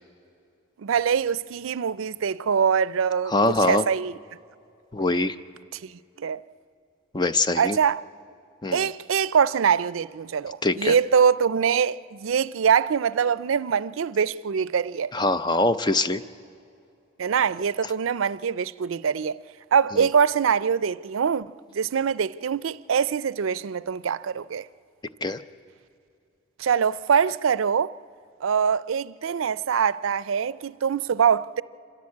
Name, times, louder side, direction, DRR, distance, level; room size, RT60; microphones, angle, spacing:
voice 1, 0.8-3.3 3.6-4.2 5.7-5.9 6.2-6.4 7.6-8.0 8.7-15.1 17.2-19.4 19.7-24.7 26.6-27.9 28.4-31.6, right 7 dB, 85° right, 0.4 m, -23 dB
voice 2, 3.3-3.8 4.9-5.3 7.1-7.8 8.6-8.9 10.6-11.0 15.1-16.2 20.0-20.1 25.2-25.4, left 2 dB, 20° left, 0.5 m, -23 dB
26.0 x 15.0 x 8.5 m
head